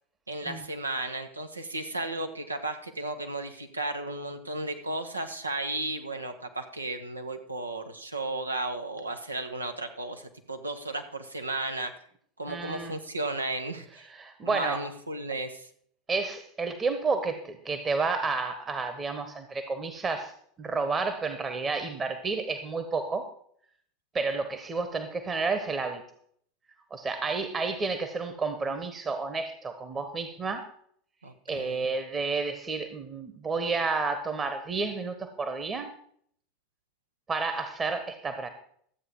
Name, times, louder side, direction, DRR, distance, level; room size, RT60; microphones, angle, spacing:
voice 1, 0.3-11.9 12.4-14.1 14.4-15.7 31.2-31.9, right 2 dB, 85° right, 5 dB, 1.2 m, -34 dB
voice 2, 12.5-12.9 14.1-14.8 16.1-20.3 20.6-23.2 24.1-26.0 26.9-30.7 31.5-35.9 37.3-38.5, right 4 dB, 25° right, 8 dB, 1.2 m, -31 dB
13.0 x 8.4 x 4.7 m, 0.62 s
figure-of-eight pair, 80°, 0 cm